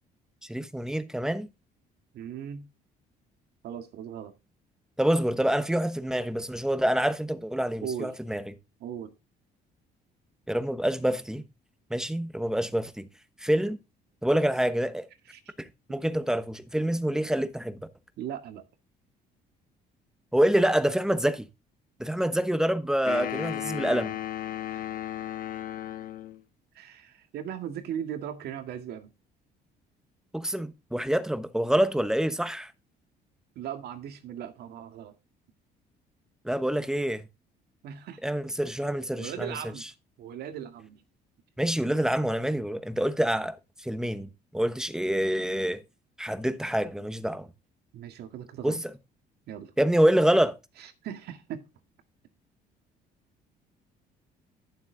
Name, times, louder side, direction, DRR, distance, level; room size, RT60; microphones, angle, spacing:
voice 1, 0.4-1.5 5.0-8.4 10.5-11.4 11.9-13.1 13.4-13.8 14.2-15.1 15.6-17.8 20.3-21.5 22.0-24.2 30.3-32.7 36.4-37.2 38.2-39.6 41.6-45.8 46.2-47.5 48.6-48.9 49.8-50.6, right 1 dB, 5° right, 1.1 m, -26 dB
voice 2, 2.1-2.7 3.6-4.3 7.8-8.2 8.8-9.1 15.3-15.5 18.2-18.6 24.7-24.8 26.7-29.1 33.6-35.1 37.8-38.2 39.2-39.9 40.2-41.0 47.9-48.8 49.5-49.7 50.8-51.6, right 9 dB, 70° right, 2.0 m, -38 dB
sound 1, 23.1-26.4, left 12 dB, 55° left, 1.4 m, -34 dB
11.5 x 7.5 x 3.9 m
cardioid pair, 110°, 17 cm